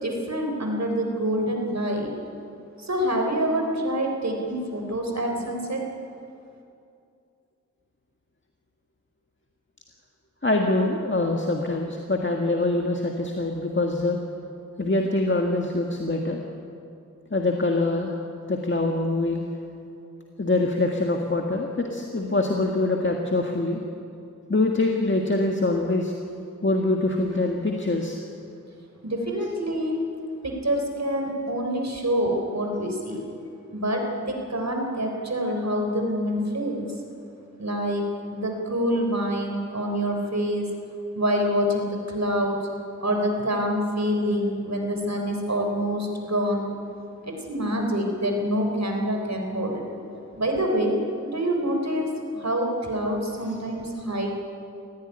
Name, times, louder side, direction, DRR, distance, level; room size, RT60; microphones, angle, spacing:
voice 1, 0.0-2.1 2.8-5.8 29.0-30.0 30.4-33.2 33.7-36.9 37.6-38.0 38.3-40.7 41.2-42.6 43.0-46.7 47.2-49.8 50.4-50.9 51.2-54.4, equal, 60° right, 2 dB, 3.9 m, -26 dB
voice 2, 10.4-14.2 14.8-16.4 17.3-18.2 18.5-19.4 20.4-23.8 24.5-26.1 26.6-28.2, left 2 dB, 40° left, 1 dB, 1.7 m, -24 dB
18.0 x 15.0 x 10.0 m, 2.5 s
wide cardioid pair, 65°, 31 cm